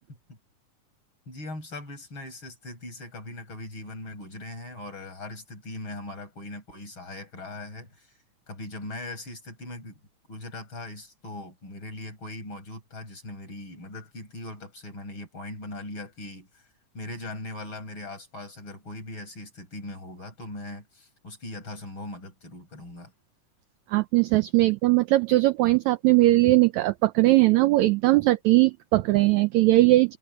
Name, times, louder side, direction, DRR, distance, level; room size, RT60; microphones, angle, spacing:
voice 1, 1.3-8.1 8.5-10.0 10.3-16.7 16.9-23.1, left 2 dB, 35° left, 7.2 m, -40 dB
voice 2, 23.9-30.2, right 18 dB, 80° right, 1.7 m, -20 dB
omnidirectional pair, 3.8 m